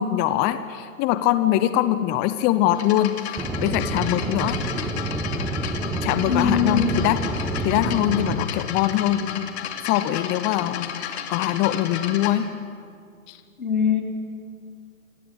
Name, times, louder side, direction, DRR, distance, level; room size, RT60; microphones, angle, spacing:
voice 1, 0.0-3.4 3.6-4.6 6.0-7.2 7.6-9.5 9.8-12.5 13.3-13.4, left 13 dB, 25° left, 12 dB, 0.8 m, -23 dB
sound 1, 2.7-12.3, left 9 dB, 45° left, 2.7 m, -34 dB
Aircraft / Engine, 3.4-8.4, right 2 dB, 5° right, 2.4 m, -28 dB
voice 2, 6.3-6.9 13.6-14.0, left 7 dB, 80° left, 2 dB, 4.5 m, -21 dB
28.0 x 20.5 x 8.3 m, 2.3 s
figure-of-eight pair, 120°, 43 cm